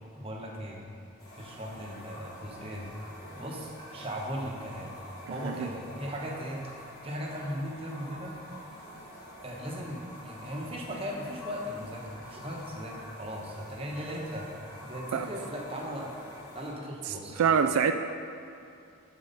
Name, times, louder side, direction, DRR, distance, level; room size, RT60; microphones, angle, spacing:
voice 1, 0.1-0.8 1.4-2.9 3.4-5.0 5.3-8.4 9.4-14.5 14.8-16.1 16.5-17.4, equal, 25° right, -1 dB, 1.0 m, -38 dB
sound 1, 1.2-16.7, equal, 20° left, 1.5 m, -47 dB
voice 2, 5.3-5.7 15.1-15.3 17.1-17.9, right 7 dB, 80° right, 8 dB, 0.3 m, -26 dB
11.0 x 4.8 x 5.3 m, 2.4 s
head